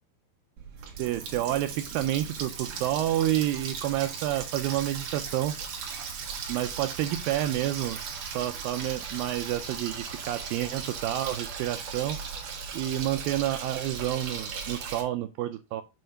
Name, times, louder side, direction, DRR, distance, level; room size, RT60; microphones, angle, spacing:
Water tap faucet, 0.6-15.0, right 6 dB, 65° right, 2.6 m, -37 dB
voice 1, 1.0-5.5 6.5-8.0 8.3-12.2 12.7-15.8, right 13 dB, 85° right, 9 dB, 2.1 m, -29 dB
7.7 x 2.8 x 5.6 m, 0.26 s
omnidirectional pair, 4.5 m